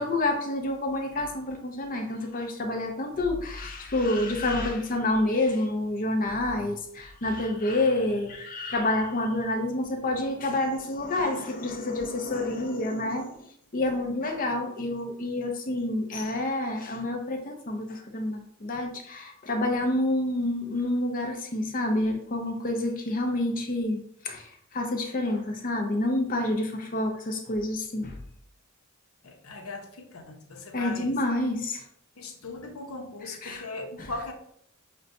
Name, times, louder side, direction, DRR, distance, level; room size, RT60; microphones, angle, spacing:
voice 1, 0.0-28.2 30.7-31.8 33.4-33.6 34.0-34.1, left 1 dB, 40° left, 3 dB, 0.7 m, -28 dB
voice 2, 29.2-31.1 32.2-34.3, left 2 dB, 75° left, 3 dB, 0.7 m, -39 dB
6.4 x 2.2 x 2.6 m, 0.68 s
head